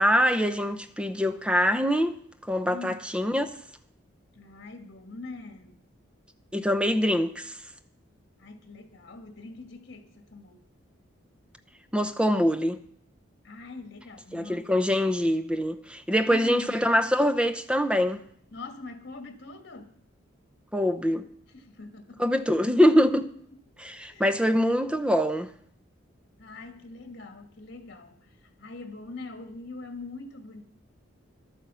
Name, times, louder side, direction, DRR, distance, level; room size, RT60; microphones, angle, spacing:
voice 1, 0.0-2.2 2.5-3.5 6.5-7.6 11.9-12.8 14.3-18.2 20.7-21.3 22.2-23.3 23.8-25.5, equal, 5° right, 0.7 m, -24 dB
voice 2, 2.7-3.1 4.3-5.8 8.4-10.6 13.4-15.0 16.3-16.8 18.5-20.0 21.5-22.7 23.5-23.6 24.1-24.4 26.4-30.6, left 3 dB, 55° left, 1.8 m, -43 dB
12.0 x 9.2 x 6.9 m
head